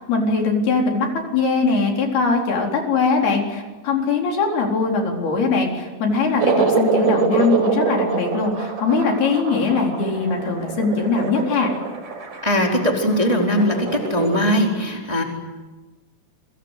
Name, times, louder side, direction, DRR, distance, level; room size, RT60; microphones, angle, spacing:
voice 1, 0.1-11.7, left 4 dB, 70° left, 1 dB, 5.9 m, -21 dB
sound 1, 6.3-14.4, right 5 dB, 45° right, 6.1 m, -24 dB
voice 2, 12.4-15.2, equal, 10° right, 1 dB, 3.6 m, -20 dB
29.5 x 24.0 x 8.3 m, 1.2 s
omnidirectional pair, 4.7 m